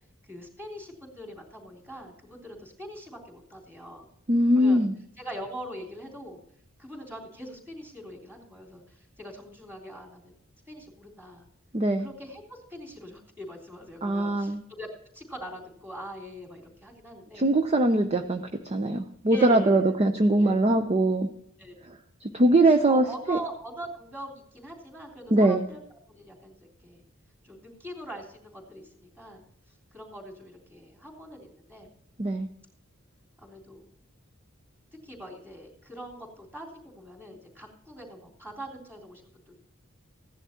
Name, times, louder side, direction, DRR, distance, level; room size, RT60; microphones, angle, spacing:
voice 1, 0.2-4.1 4.5-4.8 5.2-6.4 6.8-10.3 10.7-11.5 12.0-17.5 19.3-20.0 20.4-20.7 21.6-21.7 22.6-25.8 26.1-27.0 27.4-29.4 29.7-31.9 33.4-34.0 35.0-39.5, equal, 10° right, -1 dB, 3.3 m, -42 dB
voice 2, 4.3-4.9 11.7-12.1 14.0-14.6 17.3-21.3 22.2-23.4 25.3-25.6 32.2-32.5, right 1 dB, 30° right, 6 dB, 0.6 m, -22 dB
16.5 x 10.5 x 2.9 m, 0.70 s
head